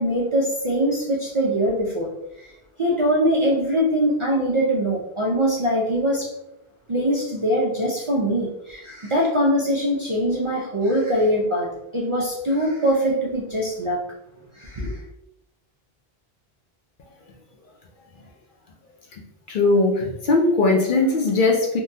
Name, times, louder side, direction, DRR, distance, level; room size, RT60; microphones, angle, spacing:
voice 1, 0.0-2.1 2.4-2.5 2.8-6.3 6.9-14.0 14.5-15.0, equal, 45° right, -4 dB, 0.4 m, -22 dB
voice 2, 19.5-21.8, left 2 dB, 60° left, 0 dB, 0.7 m, -19 dB
3.6 x 2.2 x 2.7 m, 0.87 s
omnidirectional pair, 1.0 m